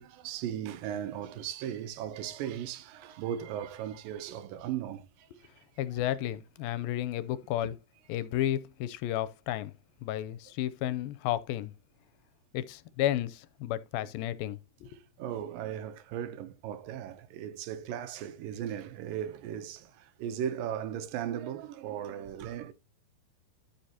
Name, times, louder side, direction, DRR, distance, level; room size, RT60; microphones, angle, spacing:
voice 1, 0.0-5.5 5.9-6.0 14.9-22.7, right 10 dB, 75° right, 2.4 m, -37 dB
voice 2, 5.8-7.8 8.1-9.7 10.0-11.7 12.5-15.0, left 13 dB, 85° left, 2.4 m, -32 dB
13.5 x 5.3 x 2.8 m
omnidirectional pair, 4.2 m